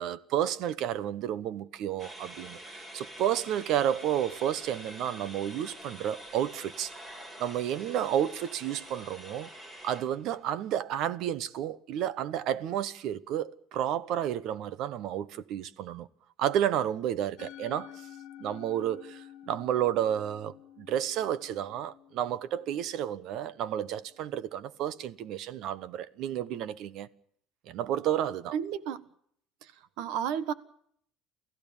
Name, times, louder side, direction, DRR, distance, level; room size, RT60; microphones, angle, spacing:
voice 1, 0.0-6.9 7.4-9.5 9.8-16.1 16.4-18.1 18.4-27.1 27.7-28.5, right 10 dB, 55° right, 1.0 m, -31 dB
sound 1, 2.0-10.6, right 1 dB, 20° right, 4.4 m, -46 dB
Musical instrument, 17.4-23.8, left 11 dB, 60° left, 1.5 m, -50 dB
voice 2, 28.5-29.0 30.0-30.5, right 8 dB, 70° right, 1.5 m, -31 dB
29.5 x 15.0 x 7.2 m
cardioid pair, 160°, 0 cm